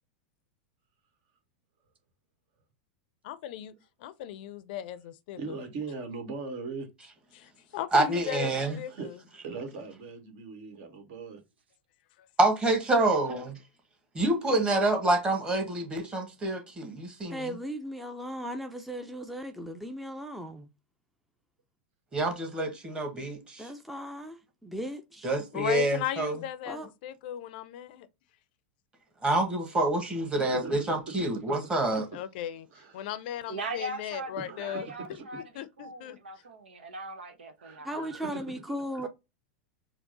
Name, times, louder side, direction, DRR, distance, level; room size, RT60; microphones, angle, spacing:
voice 1, 3.2-3.7 4.0-5.6 7.3-9.2 25.5-28.1 32.1-32.7 32.9-34.9 35.3-36.2, left 11 dB, 60° left, 0.5 m, -36 dB
voice 2, 5.4-6.9 8.9-9.1 9.4-11.4 30.6-30.7 32.0-32.1 32.7-33.1 34.4-35.1 37.6-38.4, right 4 dB, 55° right, 1.5 m, -40 dB
voice 3, 7.9-8.8 12.4-13.5 14.1-17.5 22.1-23.7 25.2-26.3 29.2-32.1, right 2 dB, 15° right, 1.5 m, -27 dB
voice 4, 17.3-20.7 23.6-25.3 26.7-26.9 37.8-39.1, equal, ahead, 0.5 m, -37 dB
voice 5, 33.5-38.1 39.0-39.1, right 2 dB, 85° right, 1.0 m, -40 dB
4.5 x 2.1 x 3.9 m
hypercardioid pair, 100°, 6 cm